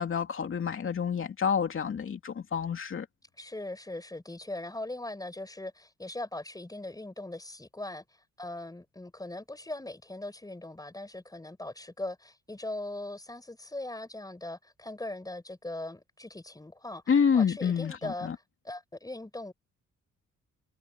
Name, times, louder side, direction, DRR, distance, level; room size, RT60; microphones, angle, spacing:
voice 1, 0.0-3.1 17.1-18.4, left 6 dB, 45° left, 2.8 m, -28 dB
voice 2, 3.4-8.0 8.4-17.0 17.3-18.3 18.6-19.5, left 2 dB, 10° left, 6.3 m, -40 dB
cardioid pair, 90°, 30 cm